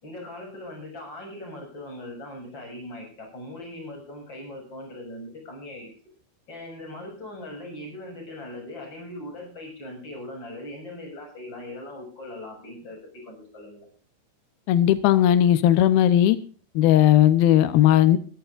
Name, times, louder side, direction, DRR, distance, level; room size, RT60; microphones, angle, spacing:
voice 1, 0.0-5.9 6.5-13.9, left 1 dB, 25° left, 1 dB, 7.5 m, -40 dB
voice 2, 14.7-16.4 16.8-18.2, left 11 dB, 90° left, 12 dB, 2.1 m, -17 dB
22.5 x 13.5 x 2.5 m, 0.40 s
omnidirectional pair, 5.6 m